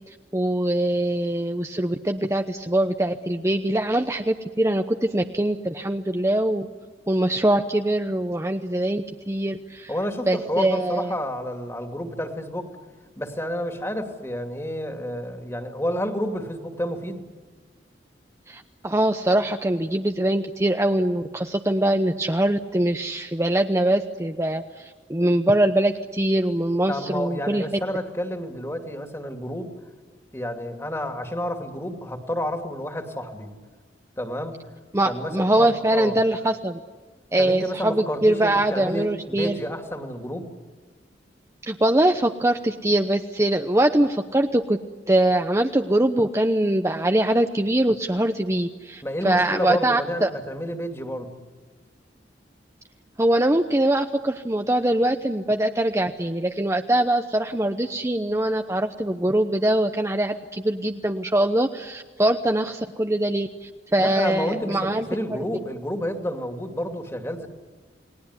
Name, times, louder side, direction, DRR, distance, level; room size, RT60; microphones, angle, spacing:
voice 1, 0.1-6.7 7.1-9.9 10.3-11.2 18.5-27.6 34.9-36.8 37.3-39.6 41.6-44.8 45.1-50.3 53.2-65.1, right 1 dB, 15° right, 5 dB, 0.8 m, -23 dB
voice 2, 9.9-12.7 13.2-17.2 26.9-29.7 30.3-33.5 34.2-34.5 35.0-36.1 37.4-40.4 49.0-51.3 64.0-67.5, equal, 15° left, 5 dB, 2.6 m, -30 dB
30.0 x 19.5 x 9.7 m, 1.5 s
head